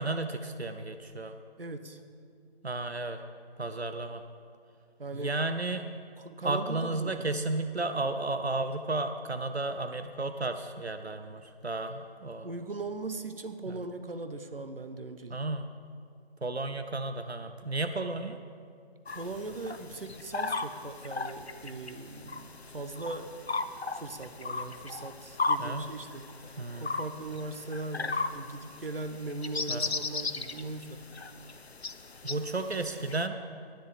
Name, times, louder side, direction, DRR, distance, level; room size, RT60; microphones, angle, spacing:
voice 1, 0.0-1.3 2.6-3.2 3.6-4.2 5.1-5.9 6.4-12.5 13.7-13.8 15.3-15.7 16.4-18.4 25.6-25.9 26.6-26.9 29.7-29.9 32.2-33.4, right 2 dB, 90° right, 8 dB, 0.9 m, -33 dB
voice 2, 1.6-2.0 5.0-5.4 6.2-7.3 12.4-15.4 19.1-23.3 23.9-31.1, right 2 dB, 65° right, 9 dB, 1.1 m, -39 dB
sound 1, 19.1-33.3, left 3 dB, 85° left, 0.8 m, -37 dB
10.5 x 10.5 x 7.6 m, 2.2 s
figure-of-eight pair, 160°, 31 cm